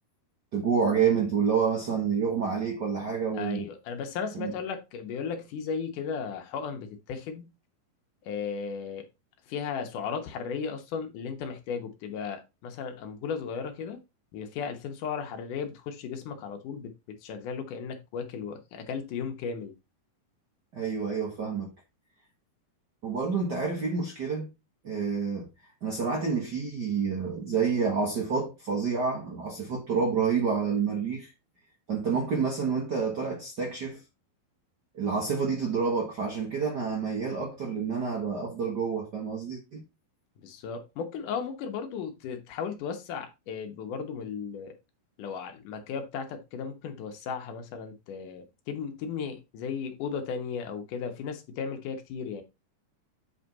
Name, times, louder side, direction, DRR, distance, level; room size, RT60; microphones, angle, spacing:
voice 1, 0.5-3.7 4.3-4.5 20.7-21.7 23.0-24.5 24.8-25.5 25.8-31.3 31.9-34.0 34.9-39.8, right 5 dB, 70° right, 0.9 m, -28 dB
voice 2, 3.3-7.5 8.2-9.1 9.5-14.0 14.3-19.7 40.4-44.8 45.2-52.4, left 6 dB, 65° left, 2.4 m, -35 dB
8.3 x 5.1 x 4.0 m
omnidirectional pair, 4.4 m